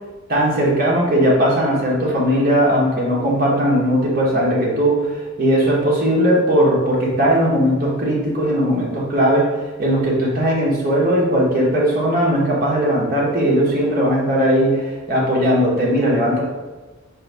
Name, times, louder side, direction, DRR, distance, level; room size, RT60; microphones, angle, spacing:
voice 1, 0.3-16.4, equal, 45° right, -4 dB, 1.0 m, -18 dB
4.2 x 2.6 x 3.3 m, 1.2 s
head